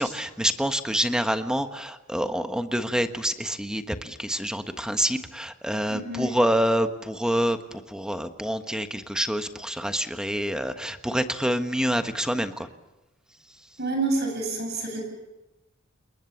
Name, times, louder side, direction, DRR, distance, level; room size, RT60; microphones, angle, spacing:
voice 1, 0.0-7.6 7.9-12.7, equal, 5° right, 8 dB, 1.3 m, -27 dB
voice 2, 5.9-6.3 13.8-15.0, right 2 dB, 55° right, 3 dB, 7.9 m, -28 dB
28.5 x 22.0 x 7.2 m, 0.99 s
head